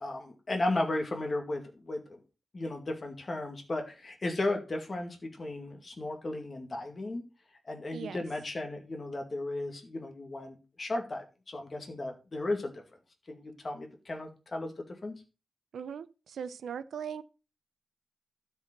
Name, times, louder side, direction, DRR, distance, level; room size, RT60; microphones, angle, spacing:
voice 1, 0.0-2.2 2.5-7.2 7.6-12.8 13.3-14.7 15.0-15.1, left 2 dB, 30° left, 2.1 m, -35 dB
voice 2, 7.9-8.2 15.7-17.2, right 7 dB, 80° right, 0.7 m, -39 dB
12.5 x 4.9 x 6.6 m
wide cardioid pair, 170°, 0 cm